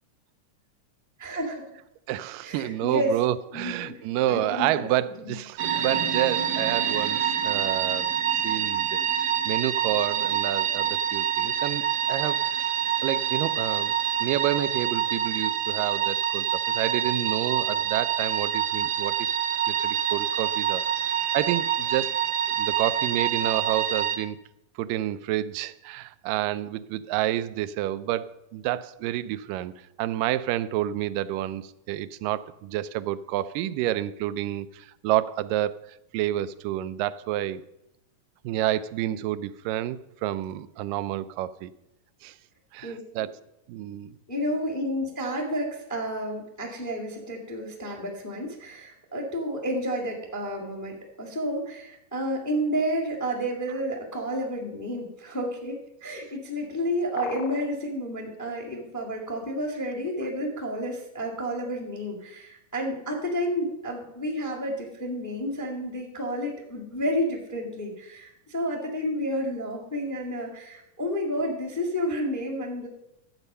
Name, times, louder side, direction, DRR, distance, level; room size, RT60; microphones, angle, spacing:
voice 1, 1.2-1.5 2.4-3.2 3.5-4.0 4.3-4.8 5.2-5.4 39.1-39.2 42.8-43.0 44.3-72.9, equal, 10° left, 0 dB, 0.8 m, -30 dB
voice 2, 2.1-11.8 12.1-12.7 13.0-13.9 14.2-19.4 19.7-20.8 21.3-22.1 22.6-24.4 24.8-29.7 30.0-37.6 38.4-41.7 42.2-42.4 42.8-43.3 43.7-44.2, right 13 dB, 90° right, 14 dB, 2.2 m, -29 dB
sound 1, 5.6-24.2, right 9 dB, 60° right, 1.3 m, -26 dB
sound 2, 57.2-57.7, left 12 dB, 90° left, 1.5 m, -37 dB
12.0 x 8.0 x 5.4 m, 0.85 s
omnidirectional pair, 3.8 m